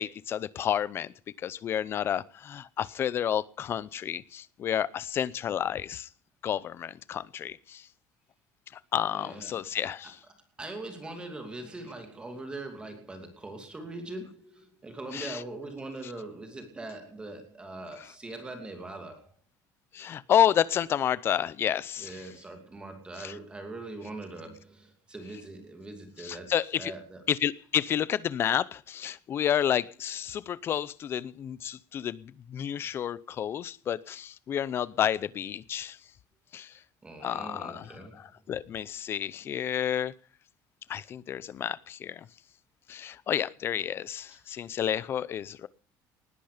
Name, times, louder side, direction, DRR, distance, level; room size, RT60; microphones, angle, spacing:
voice 1, 0.0-6.1 6.4-7.9 8.7-10.2 15.1-15.4 19.9-22.3 23.2-23.3 26.2-26.9 27.3-36.0 36.5-36.7 37.2-40.1 40.9-42.3 42.9-45.7, left 10 dB, 30° left, 0.7 m, -30 dB
voice 2, 9.1-9.5 10.6-19.3 22.0-27.2 32.7-33.0 37.0-38.2 44.5-44.7, right 2 dB, 10° right, 2.7 m, -42 dB
19.5 x 13.5 x 5.1 m
cardioid pair, 175°, 8 cm